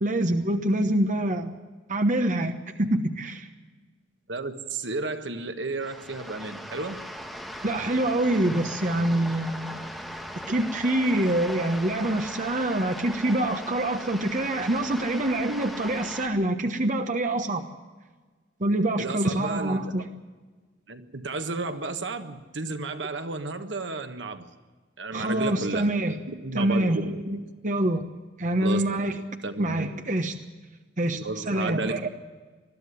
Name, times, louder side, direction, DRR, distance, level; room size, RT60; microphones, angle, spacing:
voice 1, 0.0-1.6 1.9-3.5 7.6-9.8 10.5-17.6 18.6-20.0 25.1-26.2 26.5-28.0 28.4-29.2 29.6-30.3 31.0-32.1, right 1 dB, 45° right, 7 dB, 1.2 m, -25 dB
voice 2, 4.3-7.0 19.0-19.9 20.9-24.5 25.0-25.9 26.4-27.0 28.6-28.8 29.4-29.7 31.1-32.1, right 3 dB, 75° right, 8 dB, 1.5 m, -32 dB
sound 1, 5.8-16.3, equal, ahead, 1.9 m, -38 dB
21.0 x 13.0 x 9.8 m, 1.4 s
head